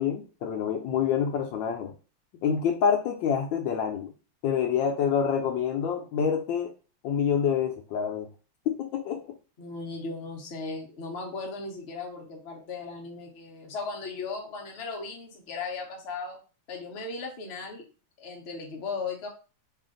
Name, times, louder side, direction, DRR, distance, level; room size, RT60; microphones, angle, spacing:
voice 1, 0.0-1.9 2.4-4.1 4.4-6.7 7.0-8.3 8.7-9.3, left 7 dB, 75° left, 5 dB, 1.2 m, -27 dB
voice 2, 9.6-16.4 16.7-17.9 18.2-19.3, left 4 dB, 45° left, 0 dB, 0.9 m, -37 dB
3.4 x 2.4 x 3.7 m, 0.35 s
omnidirectional pair, 2.1 m